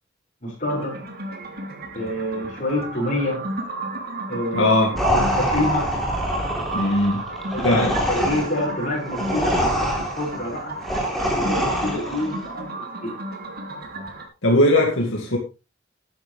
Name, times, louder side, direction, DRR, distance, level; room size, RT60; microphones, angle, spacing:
voice 1, 0.4-1.0 1.9-3.4 4.3-4.7 5.0-5.9 7.5-10.8 11.3-13.2, left 1 dB, 45° left, -7 dB, 6.7 m, -27 dB
sound 1, 0.7-14.3, right 1 dB, 55° right, 3.3 m, -32 dB
voice 2, 4.5-4.9 6.7-7.3 7.6-7.9 14.4-15.4, left 1 dB, 80° left, 0 dB, 2.4 m, -19 dB
sound 2, 5.0-12.3, equal, ahead, 3.8 m, -25 dB
12.5 x 10.5 x 3.5 m, 0.30 s
head